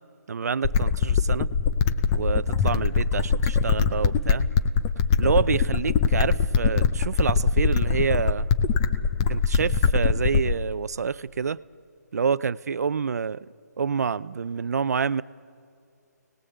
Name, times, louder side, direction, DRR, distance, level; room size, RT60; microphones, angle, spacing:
voice 1, 0.3-1.5 2.1-4.5 5.2-8.5 9.3-11.6 12.1-13.5 13.8-15.2, right 6 dB, 60° right, 18 dB, 0.5 m, -27 dB
sound 1, 0.6-10.6, left 6 dB, 15° left, 0.6 m, -22 dB
sound 2, 1.2-9.6, left 2 dB, 85° left, 5.0 m, -49 dB
30.0 x 19.0 x 8.0 m, 2.4 s
hypercardioid pair, 165°, 9 cm